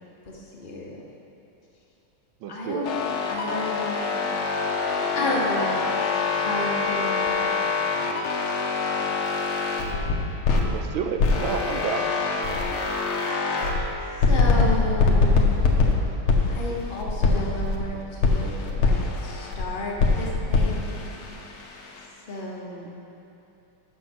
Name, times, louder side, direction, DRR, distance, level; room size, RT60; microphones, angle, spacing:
voice 1, 0.3-1.0 2.5-4.1 5.1-5.7 6.3-7.5 14.2-15.6 16.5-21.1 22.3-22.9, left 1 dB, 40° left, -2 dB, 0.7 m, -32 dB
voice 2, 2.4-2.9 10.7-12.1, right 7 dB, 75° right, 5 dB, 1.3 m, -30 dB
sound 1, 2.8-10.7 11.2-13.8 14.2-17.9 18.2-19.6 20.0-22.1, left 4 dB, 85° left, 1.8 m, -24 dB
7.6 x 6.4 x 6.0 m, 2.8 s
omnidirectional pair, 2.3 m